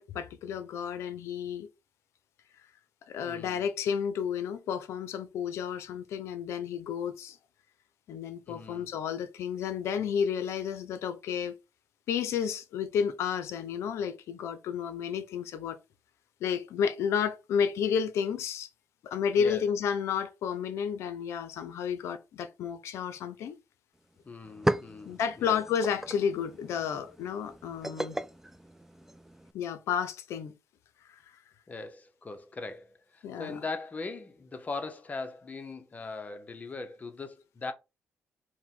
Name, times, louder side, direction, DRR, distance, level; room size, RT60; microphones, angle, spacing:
voice 1, 0.0-1.7 3.1-7.4 8.1-11.6 12.1-15.8 16.4-18.7 19.0-23.6 25.0-28.2 29.5-30.5 31.1-31.2 33.2-33.6, left 7 dB, 85° left, 0.5 m, -31 dB
voice 2, 3.2-3.6 8.5-8.9 19.4-19.6 24.2-25.6 31.7-37.7, left 3 dB, 35° left, 0.8 m, -40 dB
sound 1, 23.9-24.0 24.3-29.5, right 1 dB, 5° right, 0.4 m, -36 dB
4.7 x 2.2 x 3.7 m
cardioid pair, 75°, 5 cm